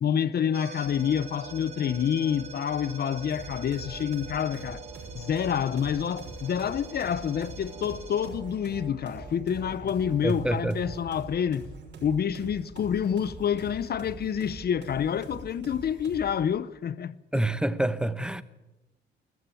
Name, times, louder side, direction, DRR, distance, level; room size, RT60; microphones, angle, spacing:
voice 1, 0.0-4.8 5.1-11.7 12.0-17.1, left 8 dB, 55° left, 0.9 m, -28 dB
sound 1, 0.5-11.3, right 5 dB, 30° right, 3.5 m, -44 dB
sound 2, 3.3-16.4, right 3 dB, 60° right, 6.0 m, -45 dB
voice 2, 10.2-10.8 17.3-18.4, right 1 dB, 5° right, 1.1 m, -27 dB
22.0 x 14.0 x 9.2 m
cardioid pair, 90°, 20 cm